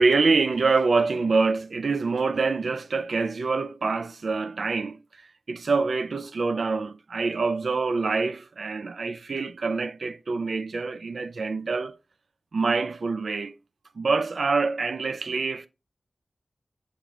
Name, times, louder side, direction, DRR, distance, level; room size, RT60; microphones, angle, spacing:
voice 1, 0.0-5.0 5.5-11.9 12.5-13.5 14.0-15.7, right 4 dB, 80° right, 0.4 m, -25 dB
6.6 x 4.5 x 3.7 m
cardioid pair, 45°, 0 cm